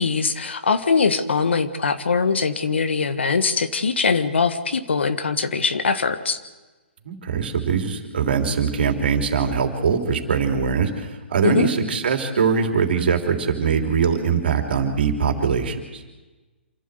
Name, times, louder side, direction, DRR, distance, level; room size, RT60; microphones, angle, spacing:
voice 1, 0.0-6.4 11.4-11.7, left 5 dB, 75° left, 10 dB, 1.5 m, -22 dB
voice 2, 7.0-16.0, right 6 dB, 60° right, 3 dB, 3.2 m, -22 dB
27.0 x 12.5 x 8.2 m, 1.2 s
figure-of-eight pair, 135°, 6 cm